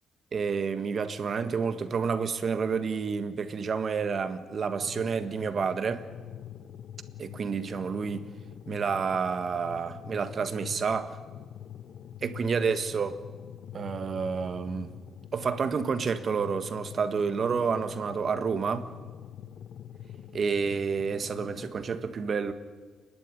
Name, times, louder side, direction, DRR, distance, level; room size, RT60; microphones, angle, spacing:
voice 1, 0.3-6.1 7.2-8.3 8.7-11.2 12.2-13.2 13.7-14.9 15.3-18.9 20.3-22.5, right 5 dB, 45° right, 1.6 m, -29 dB
sound 1, 4.8-21.7, left 10 dB, 65° left, 0.9 m, -45 dB
29.0 x 11.5 x 9.9 m
cardioid pair, 90°, 0 cm